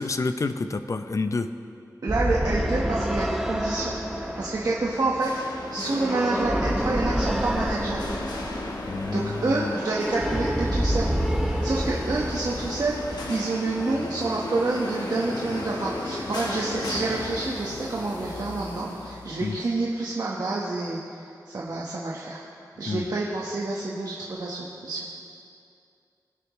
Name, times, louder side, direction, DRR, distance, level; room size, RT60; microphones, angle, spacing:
voice 1, 0.0-1.5 8.9-9.7 19.4-19.6 22.8-23.0, left 3 dB, 50° left, 9 dB, 0.6 m, -29 dB
voice 2, 2.0-5.4 5.7-8.0 9.1-11.1 11.4-13.0 13.3-22.4 22.8-25.2, right 2 dB, 70° right, -5 dB, 1.4 m, -28 dB
sound 1, 2.1-13.3, equal, 5° right, 0.8 m, -28 dB
sound 2, 3.8-19.8, left 2 dB, 85° left, 1.3 m, -36 dB
22.5 x 10.0 x 3.2 m, 2.5 s
wide cardioid pair, 95°, 7 cm